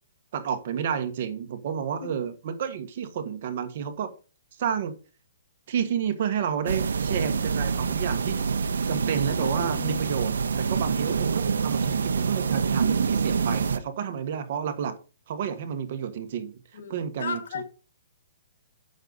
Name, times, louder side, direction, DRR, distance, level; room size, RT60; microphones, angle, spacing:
voice 1, 0.3-4.1 4.6-5.0 5.7-8.4 8.9-14.9 15.3-17.4, right 8 dB, 50° right, 1.5 m, -30 dB
sound 1, 6.7-13.8, right 5 dB, 90° right, 0.8 m, -26 dB
voice 2, 9.4-10.1 16.7-17.6, left 6 dB, 65° left, 1.9 m, -35 dB
8.8 x 6.5 x 4.1 m
hypercardioid pair, 160°, 0 cm